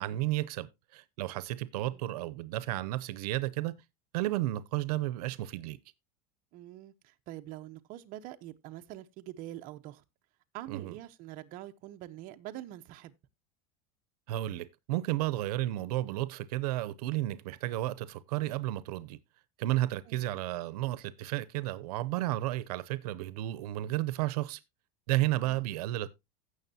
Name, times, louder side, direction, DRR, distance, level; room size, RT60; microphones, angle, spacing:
voice 1, 0.0-3.7 4.1-5.8 10.7-10.9 14.3-19.2 19.6-24.6 25.1-26.1, right 16 dB, 85° right, 0.7 m, -32 dB
voice 2, 6.5-10.0 10.5-13.1 20.1-20.3 25.4-25.6, right 14 dB, 45° right, 0.9 m, -45 dB
16.0 x 6.3 x 2.8 m
supercardioid pair, 155°, 19 cm